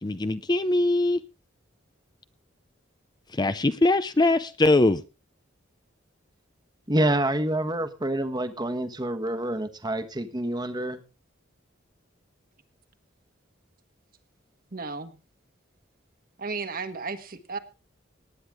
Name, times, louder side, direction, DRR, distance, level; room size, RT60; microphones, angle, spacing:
voice 1, 0.0-1.2 3.3-5.0, left 2 dB, 20° left, 0.5 m, -22 dB
voice 2, 6.9-11.0, right 1 dB, 20° right, 1.3 m, -27 dB
voice 3, 14.7-15.2 16.4-17.6, right 4 dB, 50° right, 1.5 m, -34 dB
18.5 x 10.0 x 3.6 m
head